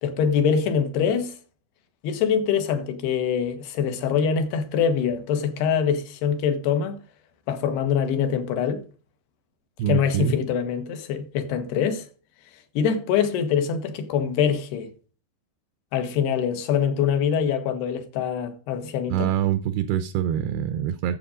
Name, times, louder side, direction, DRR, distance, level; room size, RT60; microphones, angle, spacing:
voice 1, 0.0-1.4 2.0-7.0 7.5-8.8 9.9-12.1 12.7-14.9 15.9-19.3, left 7 dB, 75° left, 3.3 m, -24 dB
voice 2, 9.8-10.4 19.1-21.2, right 10 dB, 80° right, 2.5 m, -25 dB
10.0 x 7.5 x 5.1 m
omnidirectional pair, 4.8 m